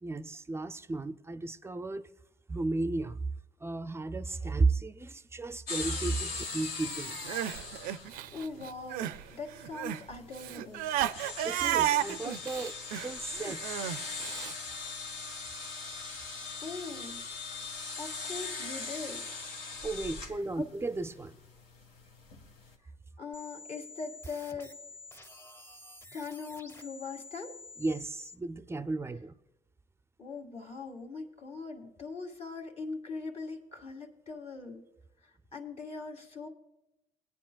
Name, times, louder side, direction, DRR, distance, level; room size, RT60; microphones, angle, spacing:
voice 1, 0.0-2.1 2.5-3.2 3.6-7.2 11.4-12.7 13.0-13.8 19.8-21.4 27.8-29.3, right 3 dB, 15° right, 0.4 m, -34 dB
sound 1, 5.7-22.7, left 4 dB, 80° left, 1.4 m, -41 dB
Crying sobbing, 7.1-9.2 9.5-14.5, right 12 dB, 80° right, 0.4 m, -33 dB
voice 2, 8.3-10.9 16.6-17.2 18.0-19.3 20.2-20.3 20.6-20.7 23.2-24.7 26.1-27.5 30.2-34.8 35.2-36.5, left 4 dB, 45° left, 2.0 m, -41 dB
sound 2, 23.3-28.3, left 3 dB, 15° left, 0.9 m, -50 dB
20.5 x 9.4 x 2.3 m
cardioid pair, 85°, 15 cm